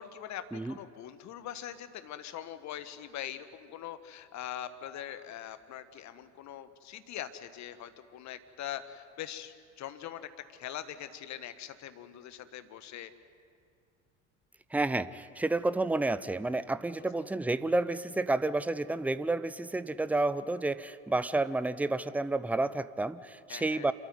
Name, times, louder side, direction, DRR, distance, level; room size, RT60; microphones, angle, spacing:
voice 1, 0.0-13.1 23.5-23.9, left 10 dB, 50° left, 12 dB, 1.5 m, -42 dB
voice 2, 14.7-23.9, right 2 dB, 5° right, 15 dB, 0.7 m, -30 dB
27.5 x 13.5 x 9.6 m, 2.4 s
hypercardioid pair, 65°, 36 cm